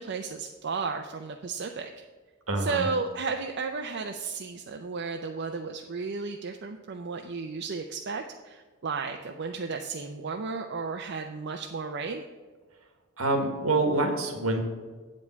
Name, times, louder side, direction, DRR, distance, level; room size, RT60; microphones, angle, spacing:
voice 1, 0.0-2.0 2.6-12.2, right 4 dB, 55° right, 4 dB, 0.5 m, -33 dB
voice 2, 2.5-2.8 13.2-14.6, right 2 dB, 75° right, 5 dB, 1.5 m, -26 dB
8.1 x 5.3 x 7.3 m, 1.4 s
head